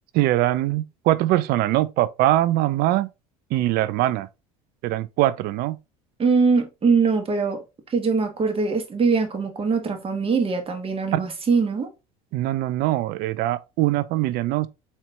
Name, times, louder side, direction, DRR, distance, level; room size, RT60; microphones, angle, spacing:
voice 1, 0.1-3.1 3.5-4.3 4.8-5.8 11.1-11.2 12.3-14.7, right 15 dB, 60° right, 0.4 m, -22 dB
voice 2, 6.2-7.6 7.9-11.9, right 4 dB, 30° right, 1.4 m, -22 dB
4.3 x 2.9 x 3.2 m
hypercardioid pair, 75°, 18 cm